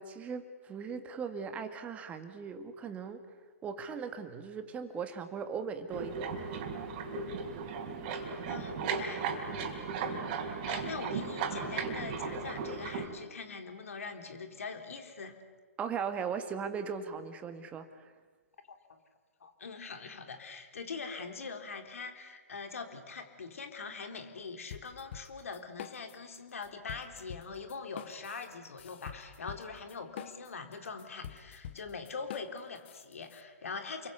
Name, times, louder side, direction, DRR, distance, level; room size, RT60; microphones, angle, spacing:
voice 1, 0.0-3.2 3.6-6.6 15.8-18.1, right 6 dB, 15° right, 8 dB, 2.1 m, -38 dB
sound 1, 5.9-13.1, right 5 dB, 35° right, 4.1 m, -36 dB
voice 2, 8.5-9.3 10.7-15.4 18.7-18.8 19.4-34.1, left 4 dB, 65° left, 5 dB, 4.0 m, -43 dB
sound 2, 24.7-26.4 26.6-33.4, left 10 dB, 45° left, 1.5 m, -46 dB
30.0 x 23.0 x 8.3 m, 1.4 s
figure-of-eight pair, 125°, 8 cm